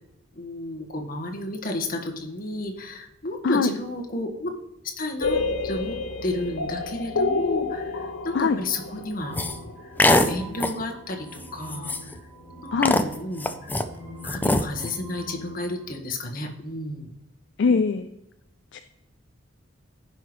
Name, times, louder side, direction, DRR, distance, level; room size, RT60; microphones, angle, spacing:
voice 1, 0.3-4.5 5.0-6.0 6.2-12.2 12.6-13.7 14.2-17.1, left 2 dB, 50° left, 2 dB, 1.5 m, -32 dB
sound 1, 5.2-11.0, left 3 dB, 85° left, 0.8 m, -29 dB
sound 2, 9.2-16.0, equal, 10° right, 2.3 m, -44 dB
sound 3, 9.3-9.6 10.0-10.3 10.6-10.8 11.3-11.4 11.7-12.2 12.8-13.8 14.2-14.9, left 1 dB, 10° left, 0.5 m, -22 dB
voice 2, 17.6-18.1 18.7-18.8, left 4 dB, 65° left, 9 dB, 0.4 m, -22 dB
14.5 x 5.8 x 3.1 m, 0.87 s
head